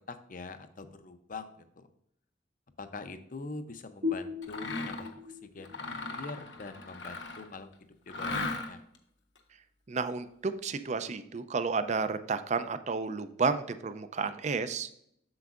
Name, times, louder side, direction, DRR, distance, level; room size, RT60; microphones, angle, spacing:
voice 1, 0.0-1.5 1.8-1.9 2.8-7.7 8.1-8.8, left 3 dB, 45° left, 10 dB, 0.6 m, -44 dB
sound 1, 4.0-7.4, left 4 dB, 85° right, 1.9 m, -39 dB
Mechanisms, 4.4-5.1 5.6-7.5 8.1-9.0, left 3 dB, 65° left, 0.9 m, -37 dB
voice 2, 9.9-14.9, right 4 dB, 35° right, 11 dB, 0.4 m, -31 dB
7.8 x 6.9 x 2.4 m, 0.72 s
head